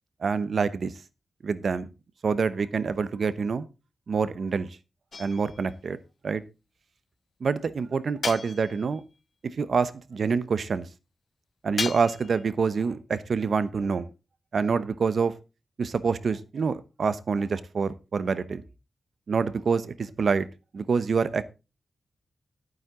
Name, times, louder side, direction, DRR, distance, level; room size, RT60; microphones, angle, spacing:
voice 1, 0.2-0.9 1.4-1.9 2.2-3.7 4.1-4.7 5.2-6.0 6.2-6.4 7.4-9.0 9.4-10.8 11.6-14.1 14.5-15.3 15.8-18.6 19.3-20.5 20.7-21.4, right 5 dB, 60° right, 0.9 m, -26 dB
sound 1, 5.1-5.8 8.2-9.0 11.8-12.4, left 4 dB, 50° left, 0.5 m, -34 dB
11.0 x 9.4 x 3.8 m
wide cardioid pair, 120°, 0 cm